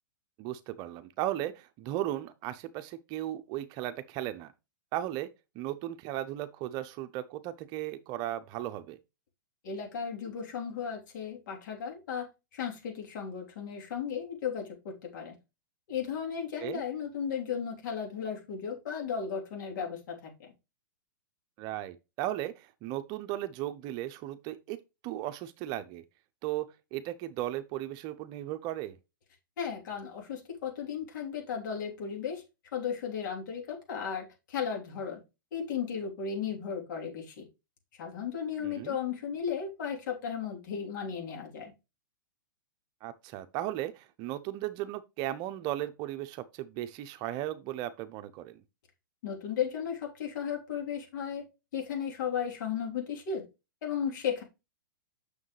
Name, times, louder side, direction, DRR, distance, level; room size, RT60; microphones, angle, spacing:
voice 1, 0.4-4.5 4.9-5.3 5.5-9.0 16.6-16.8 21.6-24.8 25.0-26.0 26.4-29.0 38.6-39.0 43.0-48.6, right 13 dB, 35° right, 0.7 m, -36 dB
voice 2, 9.6-12.3 12.5-15.3 15.9-20.5 29.6-32.4 32.7-35.2 35.5-37.5 38.0-41.7 49.2-51.4 51.7-53.4 53.8-54.4, left 7 dB, 60° left, 3.5 m, -35 dB
7.3 x 6.7 x 3.3 m
hypercardioid pair, 130°, 11 cm